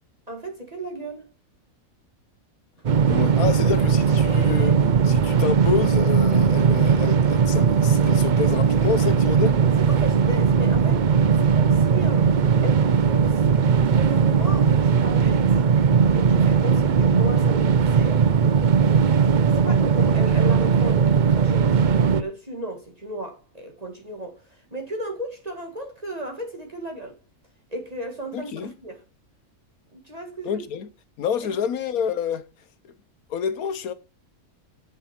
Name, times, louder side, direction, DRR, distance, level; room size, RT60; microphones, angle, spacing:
voice 1, 0.3-1.3 9.8-11.1 11.4-12.3 12.6-13.5 13.9-15.5 16.1-18.3 19.5-27.2 27.7-29.0 29.9-30.7 31.4-31.5, right 1 dB, 25° right, 1.9 m, -35 dB
sound 1, 2.8-22.2, right 6 dB, 60° right, 0.4 m, -19 dB
voice 2, 3.1-9.6 28.3-28.7 30.4-30.9 31.2-32.4 33.3-33.9, left 7 dB, 75° left, 1.3 m, -28 dB
8.2 x 7.5 x 5.8 m
omnidirectional pair, 1.6 m